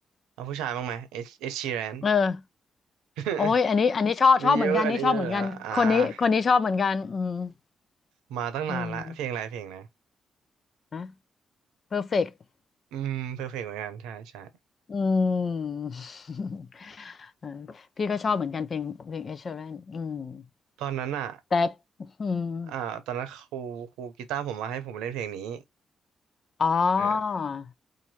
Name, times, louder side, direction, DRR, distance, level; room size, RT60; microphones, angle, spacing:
voice 1, 0.4-2.0 3.2-3.5 4.4-6.1 8.3-9.9 12.9-14.5 20.8-21.4 22.7-25.6 27.0-27.2, right 9 dB, 85° right, 0.7 m, -32 dB
voice 2, 2.0-2.4 3.4-7.5 8.7-9.1 10.9-11.1 11.9-12.3 14.9-17.7 18.0-20.4 21.5-21.7 22.2-22.7 26.6-27.7, left 5 dB, 50° left, 0.5 m, -26 dB
2.8 x 2.6 x 4.2 m
hypercardioid pair, 45°, 0 cm